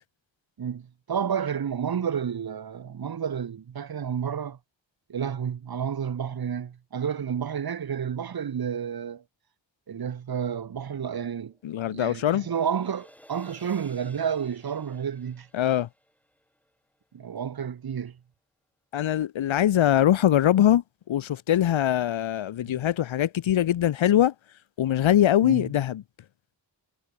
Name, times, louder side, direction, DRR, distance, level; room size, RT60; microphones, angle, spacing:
voice 1, 0.6-4.6 5.1-9.2 9.9-11.5 11.9-15.5 17.1-18.2 22.6-22.8 25.4-25.7, right 8 dB, 55° right, 0.7 m, -30 dB
sound 1, 11.4-17.3, equal, 5° left, 5.2 m, -56 dB
voice 2, 11.6-12.5 15.5-15.9 18.9-24.3 24.8-26.0, left 11 dB, 85° left, 0.6 m, -22 dB
wide cardioid pair, 75°, 45 cm